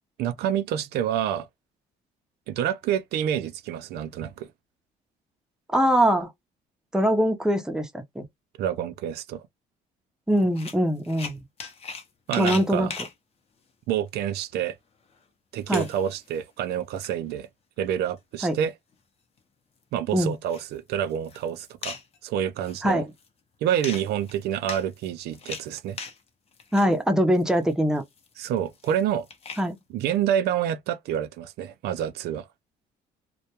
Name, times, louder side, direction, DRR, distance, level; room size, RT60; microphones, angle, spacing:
voice 1, 0.2-1.5 2.5-4.5 8.6-9.5 12.3-12.9 13.9-14.8 15.5-17.5 17.8-18.7 19.9-22.0 22.2-23.0 23.6-26.0 28.4-29.3 29.9-32.5, right 10 dB, 75° right, 0.4 m, -28 dB
voice 2, 5.7-6.3 6.9-8.2 10.3-11.4 12.4-12.9 15.7-15.9 18.4-18.5 20.1-20.3 22.8-23.1 26.7-28.0 29.6-29.8, equal, 5° right, 0.6 m, -22 dB
sound 1, 10.4-12.1 12.3-13.1 14.1-14.2 14.7-14.8 15.2-15.3 15.6-16.4 16.7-17.1 17.9-18.5 18.9-19.0 19.4-19.5 20.3-20.7 21.1-22.2 22.6-23.3 23.8-26.2 26.5-27.0 27.4-29.7, left 5 dB, 35° left, 0.7 m, -39 dB
2.2 x 2.1 x 2.8 m
cardioid pair, 110°, 17 cm